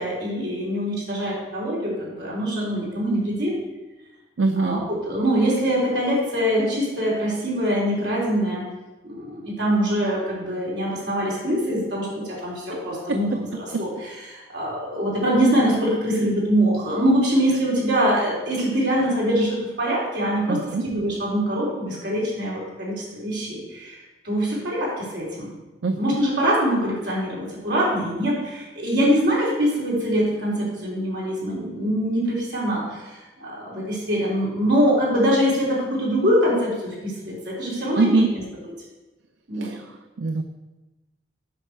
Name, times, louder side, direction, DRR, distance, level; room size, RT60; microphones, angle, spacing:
voice 1, 0.0-3.6 4.5-8.6 9.0-25.6 25.9-38.4 39.5-39.7, equal, 70° right, -5 dB, 3.6 m, -23 dB
voice 2, 4.4-4.8 20.5-20.8 25.8-25.9 38.0-38.3 39.6-39.7 40.2-40.4, right 3 dB, 90° right, 6 dB, 0.5 m, -21 dB
8.1 x 5.5 x 6.6 m, 1.1 s
head